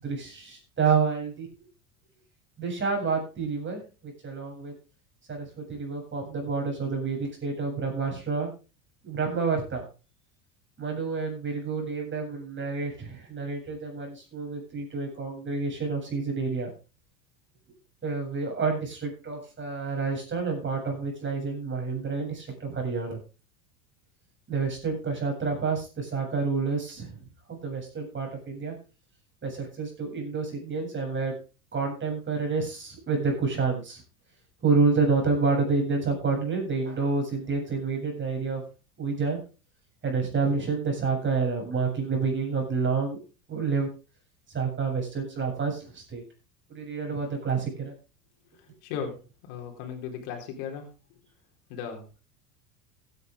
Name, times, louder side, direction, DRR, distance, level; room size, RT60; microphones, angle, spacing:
voice 1, 0.0-1.5 2.6-4.7 5.3-8.5 9.0-9.8 10.8-16.7 18.0-23.2 24.5-27.2 27.5-28.7 29.4-31.3 31.7-34.0 34.6-38.6 39.0-39.4 40.0-43.2 43.5-43.9 44.5-46.2 46.7-47.9, right 4 dB, 25° right, 1 dB, 7.8 m, -29 dB
voice 2, 48.8-49.2 49.5-50.8 51.7-52.2, left 7 dB, 60° left, 3 dB, 4.2 m, -36 dB
16.0 x 9.8 x 3.7 m, 0.32 s
hypercardioid pair, 85°, 44 cm